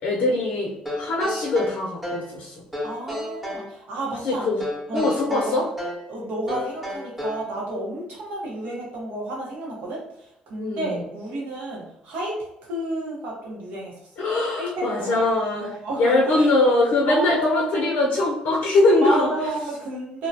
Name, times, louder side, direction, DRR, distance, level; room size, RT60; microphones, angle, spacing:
voice 1, 0.0-2.5 4.2-4.6 4.9-5.7 10.6-11.0 14.2-19.3, left 2 dB, 75° left, -2 dB, 0.5 m, -22 dB
sound 1, 0.9-2.3 2.7-3.7 4.6-6.1 6.5-7.5, left 1 dB, 10° right, 0.8 m, -32 dB
voice 2, 2.8-4.5 4.9-5.6 6.1-13.9 14.6-15.3 15.6-16.5 17.1-17.9 19.0-20.3, right 1 dB, 85° right, -2 dB, 0.9 m, -31 dB
2.7 x 2.1 x 2.7 m, 0.80 s
cardioid pair, 100°, 3 cm